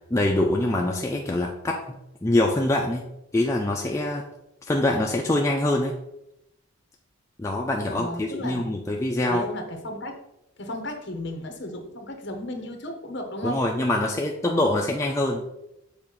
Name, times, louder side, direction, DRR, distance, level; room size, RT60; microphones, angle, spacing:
voice 1, 0.1-3.1 3.3-4.3 4.7-5.9 7.4-9.5 13.4-15.4, left 1 dB, 15° left, 0 dB, 0.4 m, -24 dB
voice 2, 7.9-8.7 9.3-10.2 10.6-13.6, left 1 dB, 55° left, 4 dB, 1.0 m, -34 dB
6.8 x 2.5 x 5.5 m, 0.84 s
head